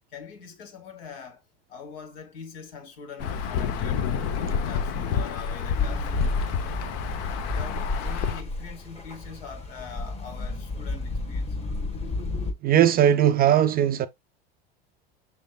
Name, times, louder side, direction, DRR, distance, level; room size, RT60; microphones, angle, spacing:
voice 1, 0.1-1.4 1.7-4.1 4.4-6.4 7.5-11.6, left 6 dB, 70° left, 2.1 m, -43 dB
Insect / Thunder / Rain, 3.2-8.4, left 6 dB, 50° left, 0.9 m, -29 dB
sound 1, 5.7-12.5, left 3 dB, 20° left, 1.4 m, -32 dB
voice 2, 12.6-14.1, right 10 dB, 30° right, 0.5 m, -19 dB
6.6 x 3.4 x 2.3 m
hypercardioid pair, 95°, 30 cm